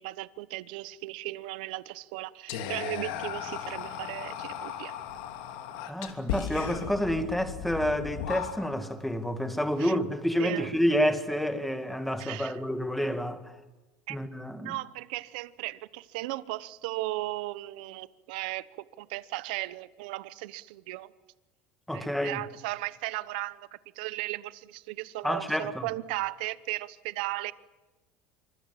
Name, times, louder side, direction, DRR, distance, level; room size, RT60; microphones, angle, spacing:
voice 1, 0.0-5.0 9.8-10.0 10.4-10.7 12.2-12.5 14.1-14.2 14.6-18.7 19.0-21.1 21.9-23.7 24.0-27.5, right 18 dB, 80° right, 0.9 m, -36 dB
Whispering, 2.5-8.9, left 9 dB, 80° left, 3.0 m, -36 dB
voice 2, 5.9-13.5 14.1-14.8 21.9-22.4 25.2-25.9, equal, ahead, 2.0 m, -29 dB
26.5 x 25.0 x 7.5 m
cardioid pair, 145°, 5 cm